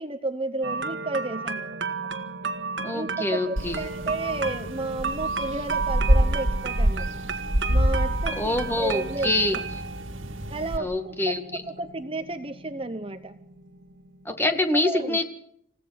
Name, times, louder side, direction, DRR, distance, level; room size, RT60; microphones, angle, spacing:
voice 1, 0.0-1.9 2.9-7.1 7.7-9.3 10.5-13.4 14.7-15.2, right 2 dB, 25° right, 9 dB, 0.8 m, -32 dB
sound 1, 0.6-14.5, right 4 dB, 65° right, 1.8 m, -33 dB
voice 2, 2.8-3.8 8.4-9.5 10.8-11.4 14.2-15.2, left 2 dB, 10° left, 7 dB, 1.8 m, -25 dB
sound 2, 3.6-10.8, equal, 85° right, 2.0 m, -27 dB
28.5 x 16.5 x 5.8 m, 0.70 s
head